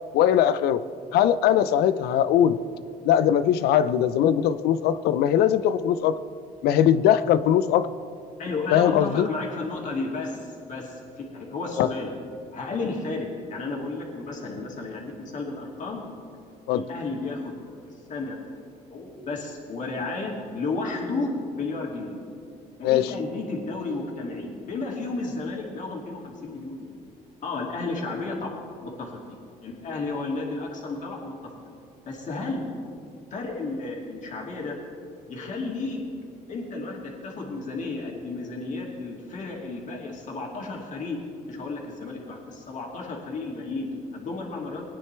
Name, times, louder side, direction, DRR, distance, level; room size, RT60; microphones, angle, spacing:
voice 1, 0.1-0.8 1.1-2.6 3.0-6.2 6.6-7.9 8.7-9.3 11.8-11.9 16.7-16.8 22.8-23.1, left 10 dB, 75° left, 14 dB, 0.5 m, -20 dB
voice 2, 8.4-12.1 12.5-16.0 16.7-17.6 17.9-18.4 18.9-22.2 22.8-26.8 27.4-31.3 32.1-32.7 33.3-34.8 35.3-36.0 36.5-41.2 41.5-44.8, left 3 dB, 50° left, -2 dB, 2.6 m, -33 dB
19.0 x 9.8 x 3.4 m, 2.4 s
cardioid pair, 90°, 16 cm